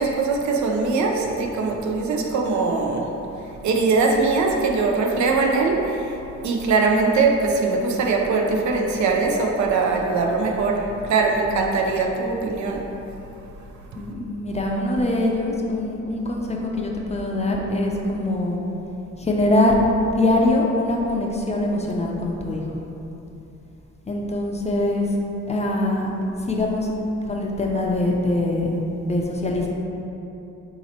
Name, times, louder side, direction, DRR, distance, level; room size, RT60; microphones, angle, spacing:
voice 1, 0.0-3.2 3.6-6.1 6.4-12.9, right 4 dB, 70° right, 1 dB, 0.6 m, -21 dB
voice 2, 14.0-18.6 19.2-19.8 20.0-22.6 24.1-25.1 25.5-26.1 26.5-26.9 27.3-28.8 29.1-29.7, left 1 dB, 20° left, -1 dB, 0.5 m, -23 dB
3.9 x 2.8 x 4.3 m, 2.9 s
cardioid pair, 95°, 30 cm